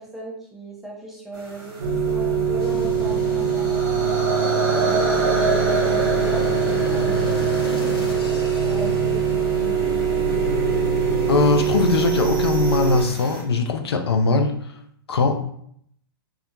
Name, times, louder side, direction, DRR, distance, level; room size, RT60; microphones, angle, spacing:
voice 1, 0.0-4.5 4.9-8.0 8.6-9.5, right 2 dB, ahead, -4 dB, 0.6 m, -37 dB
sound 1, 1.3-13.4, right 2 dB, 50° right, 0.9 m, -28 dB
sound 2, 1.8-13.0, right 7 dB, 90° right, 0.6 m, -23 dB
sound 3, 2.6-9.5, left 3 dB, 65° left, 0.7 m, -37 dB
voice 2, 11.3-14.7 15.1-15.4, left 4 dB, 85° left, 5 dB, 0.4 m, -21 dB
2.3 x 2.2 x 2.8 m, 0.68 s
hypercardioid pair, 125°, 13 cm